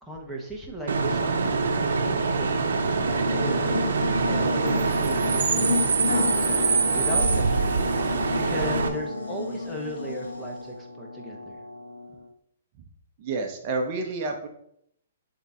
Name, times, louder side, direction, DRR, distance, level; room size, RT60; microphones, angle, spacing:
voice 1, 0.0-2.5 3.0-3.9 4.2-6.3 6.9-7.8 8.5-11.6, right 1 dB, ahead, -4 dB, 0.8 m, -36 dB
Bus / Idling / Screech, 0.9-8.9, right 4 dB, 75° right, 0.7 m, -24 dB
Buzz, 2.6-10.8, left 3 dB, 90° left, 1.1 m, -32 dB
sound 1, 6.1-12.3, left 2 dB, 65° left, 1.2 m, -34 dB
voice 2, 13.2-14.5, right 3 dB, 30° right, 4 dB, 0.7 m, -29 dB
6.5 x 3.6 x 4.1 m, 0.70 s
hypercardioid pair, 165°, 0 cm